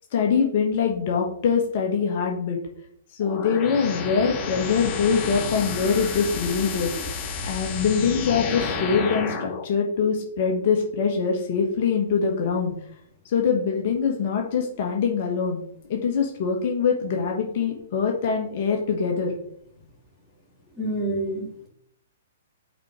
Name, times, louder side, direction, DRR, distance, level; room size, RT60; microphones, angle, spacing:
voice 1, 0.1-2.6 3.1-6.9 7.4-12.7 13.2-15.6 15.9-19.3, left 6 dB, 45° left, 0 dB, 1.5 m, -23 dB
sound 1, 3.2-9.6, left 4 dB, 25° left, 1.3 m, -31 dB
voice 2, 20.8-21.7, right 1 dB, 5° left, -7 dB, 2.8 m, -28 dB
5.9 x 4.3 x 5.0 m, 0.68 s
figure-of-eight pair, 120°, 0 cm